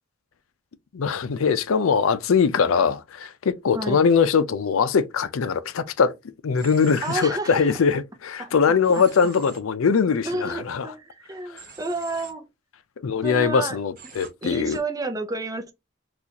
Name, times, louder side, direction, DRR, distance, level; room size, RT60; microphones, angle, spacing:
voice 1, 0.9-6.2 6.4-10.9 11.5-11.6 13.0-14.8, left 6 dB, 80° left, 0.5 m, -22 dB
Human voice / Train, 6.6-7.3 8.8-9.6 11.6-12.3 14.0-14.3 14.7-14.8, right 5 dB, 40° right, 1.0 m, -44 dB
voice 2, 7.0-7.8 8.4-9.0 10.2-12.5 13.2-13.8 14.2-15.7, right 2 dB, 15° right, 0.5 m, -31 dB
4.0 x 2.4 x 2.8 m
head